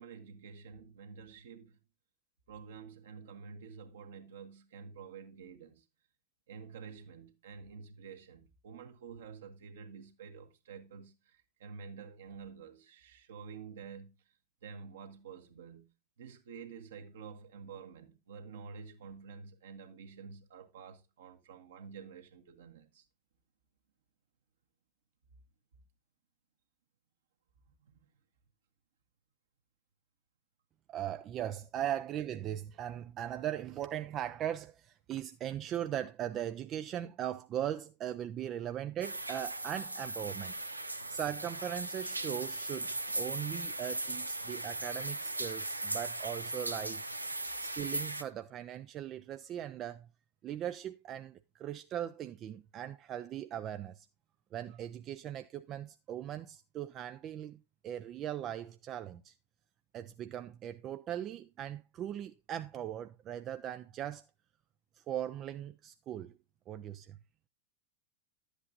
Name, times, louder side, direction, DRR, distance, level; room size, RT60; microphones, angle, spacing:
voice 1, 0.0-1.7 2.5-5.8 6.5-14.1 14.6-15.9 16.2-23.0 27.8-27.9 41.0-41.1, right 6 dB, 60° right, 1.4 m, -49 dB
voice 2, 30.9-40.5 41.1-47.0 47.6-50.1 50.4-54.1 54.5-59.3 59.9-64.3 64.9-66.4 66.7-67.2, right 11 dB, 30° right, 0.4 m, -39 dB
sound 1, 39.0-48.2, right 2 dB, 85° right, 0.6 m, -38 dB
11.5 x 8.1 x 2.5 m
figure-of-eight pair, 90°, 0 cm